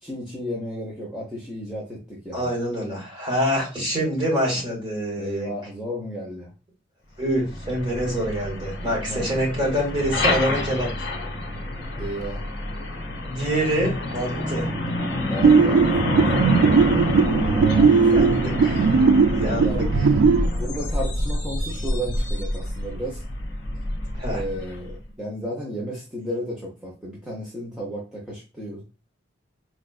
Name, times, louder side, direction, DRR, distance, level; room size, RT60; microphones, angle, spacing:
voice 1, 0.0-2.5 5.2-6.5 8.8-9.3 12.0-12.5 15.3-18.4 19.6-19.8 20.5-23.2 24.3-28.8, equal, 5° right, -6 dB, 0.8 m, -33 dB
voice 2, 2.3-5.5 7.2-11.1 13.3-14.7 18.0-18.9 19.3-19.8 24.1-24.4, equal, 25° right, -3 dB, 1.6 m, -26 dB
Truck, 7.3-25.0, left 1 dB, 60° left, 1.1 m, -27 dB
sound 1, 15.4-20.5, right 5 dB, 85° right, 0.3 m, -18 dB
4.2 x 2.5 x 2.3 m, 0.33 s
head